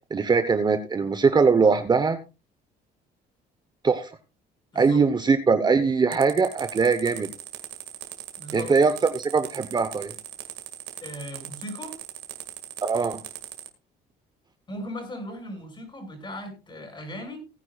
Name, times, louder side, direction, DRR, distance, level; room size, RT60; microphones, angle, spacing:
voice 1, 0.1-2.2 3.8-4.2 4.7-7.3 8.5-10.1 12.8-13.2, right 5 dB, 25° right, 10 dB, 0.9 m, -21 dB
voice 2, 4.7-5.0 8.4-8.7 11.0-11.9 14.7-17.4, equal, 30° left, 4 dB, 6.2 m, -37 dB
marble fountain, 6.1-13.7, right 13 dB, 85° right, 2.0 m, -39 dB
19.0 x 9.7 x 2.4 m, 0.30 s
cardioid pair, 110°, 17 cm